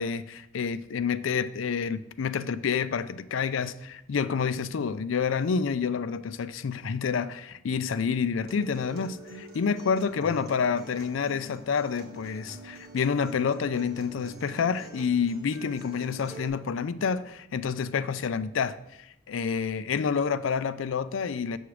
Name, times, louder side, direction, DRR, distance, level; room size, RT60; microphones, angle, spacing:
voice 1, 0.0-18.8 19.3-21.6, left 6 dB, 70° left, 0.4 m, -28 dB
Acoustic guitar, 8.5-16.5, right 1 dB, 55° right, 1.5 m, -45 dB
7.0 x 6.4 x 4.8 m
head